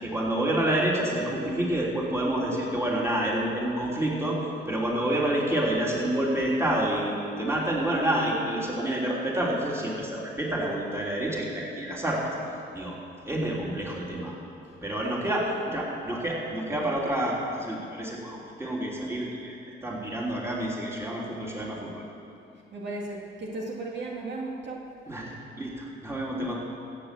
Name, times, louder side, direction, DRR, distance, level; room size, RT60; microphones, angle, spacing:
voice 1, 0.0-4.4 4.7-12.3 12.7-13.0 13.3-14.4 14.8-19.5 19.8-22.0 25.1-26.6, right 1 dB, 15° right, -4 dB, 3.3 m, -28 dB
voice 2, 15.0-15.8 22.7-24.9, right 2 dB, 60° right, -2 dB, 2.2 m, -35 dB
15.5 x 7.6 x 7.7 m, 2.6 s
cardioid pair, 90°, 20 cm